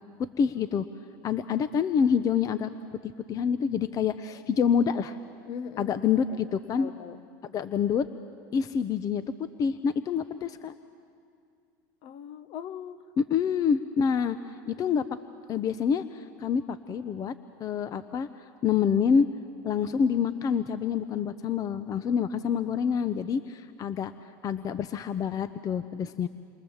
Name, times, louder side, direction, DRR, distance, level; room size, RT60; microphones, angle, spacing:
voice 1, 0.4-0.9 1.2-2.7 3.0-5.2 5.8-6.9 7.4-8.1 8.5-9.2 9.6-10.7 13.2-14.4 14.7-15.0 15.5-17.3 17.6-18.3 18.6-19.3 19.6-24.1 24.4-26.3, left 7 dB, 35° left, 12 dB, 0.8 m, -27 dB
voice 2, 5.5-6.0 6.3-7.2 12.0-13.0, left 8 dB, 55° left, 13 dB, 1.2 m, -40 dB
28.5 x 23.5 x 7.3 m, 2.3 s
supercardioid pair, 115°, 11 cm